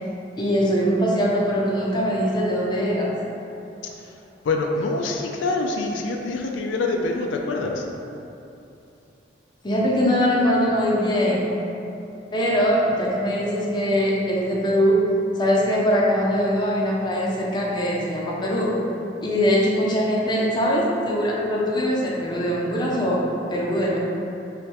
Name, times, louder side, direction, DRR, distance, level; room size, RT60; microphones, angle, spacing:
voice 1, 0.4-3.1 9.6-11.5 12.3-15.0 15.4-18.8 19.2-23.2 23.5-24.0, equal, 25° left, -4 dB, 0.5 m, -22 dB
voice 2, 4.4-7.9, left 3 dB, 85° left, 2 dB, 0.3 m, -25 dB
3.3 x 3.0 x 3.0 m, 2.8 s
head